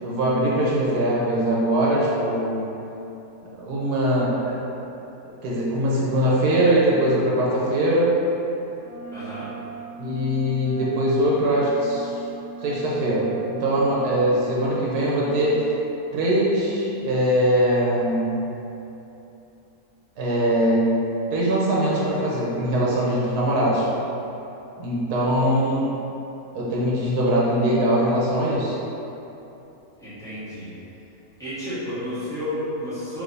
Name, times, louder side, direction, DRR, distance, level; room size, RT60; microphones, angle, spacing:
voice 1, 0.0-2.6 3.6-4.6 5.4-8.1 10.0-12.1 12.6-15.5 16.1-18.4 20.2-20.9 21.3-23.9 24.8-26.0 26.5-28.7, right 1 dB, 85° right, -6 dB, 1.2 m, -22 dB
Wind instrument woodwind instrument, 8.8-15.6, right 4 dB, 90° left, 0.4 m, -38 dB
voice 2, 9.1-9.5 30.0-30.7 31.4-33.2, equal, ahead, -16 dB, 1.3 m, -31 dB
3.4 x 3.4 x 2.6 m, 2.9 s
omnidirectional pair, 1.6 m